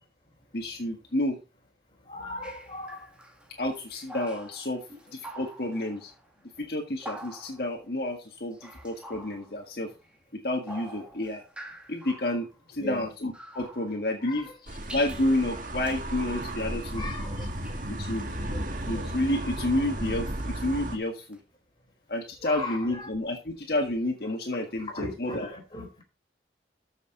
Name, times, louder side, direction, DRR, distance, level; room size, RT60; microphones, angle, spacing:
voice 1, 0.5-1.4 3.6-4.8 5.1-6.1 6.6-9.9 10.4-11.4 11.9-14.5 14.9-17.1 17.9-18.2 18.9-21.4 22.1-25.5, left 1 dB, 60° left, 2 dB, 1.7 m, -30 dB
voice 2, 2.1-3.1 12.8-13.1 14.2-14.5 16.9-17.5 18.2-18.7 22.4-23.1 24.9-25.9, left 2 dB, 25° left, 1 dB, 4.3 m, -38 dB
sound 1, 2.4-6.3 7.0-7.8 8.5-10.2 10.7-12.6 13.3-14.5 14.8-15.4 15.8-16.0 17.2-17.9 20.4-20.5 21.3-21.4, right 1 dB, 5° right, 1.8 m, -46 dB
sound 2, 14.7-21.0, right 1 dB, 45° right, 1.9 m, -34 dB
13.5 x 6.7 x 3.9 m, 0.31 s
head